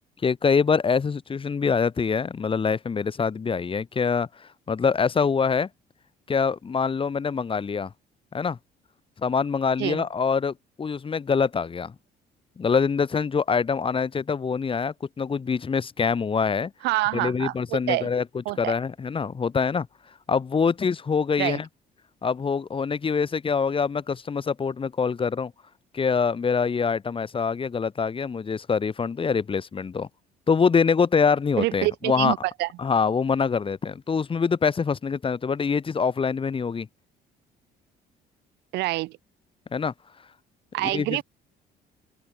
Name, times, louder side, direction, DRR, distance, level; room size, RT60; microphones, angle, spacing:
voice 1, 0.2-5.7 6.3-7.9 8.3-8.6 9.2-11.9 12.6-16.7 17.1-18.2 18.6-19.9 20.3-21.7 22.2-25.5 25.9-30.1 30.5-32.3 32.8-36.9 39.7-39.9 40.8-41.2, left 5 dB, 30° left, 6.5 m, -24 dB
voice 2, 16.8-18.1 18.4-18.7 21.4-21.6 31.6-32.7 38.7-39.2 40.7-41.2, right 20 dB, 90° right, 4.7 m, -26 dB
open air
cardioid pair, 110°, 17 cm